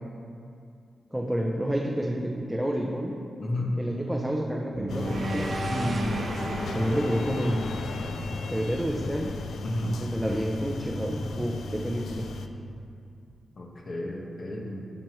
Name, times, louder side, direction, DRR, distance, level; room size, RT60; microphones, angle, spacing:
voice 1, 1.1-3.1 3.8-7.7 8.5-9.4 9.9-12.3, equal, 5° right, -1 dB, 0.6 m, -29 dB
voice 2, 3.4-3.8 9.6-10.0 13.6-14.8, left 1 dB, 50° left, -1 dB, 1.2 m, -32 dB
sound 1, 4.7-9.0, right 2 dB, 50° right, 0.5 m, -34 dB
Room tone cocina, 4.9-12.5, left 3 dB, 80° left, 0.4 m, -34 dB
9.0 x 6.0 x 3.1 m, 2.4 s
cardioid pair, 85°, 0 cm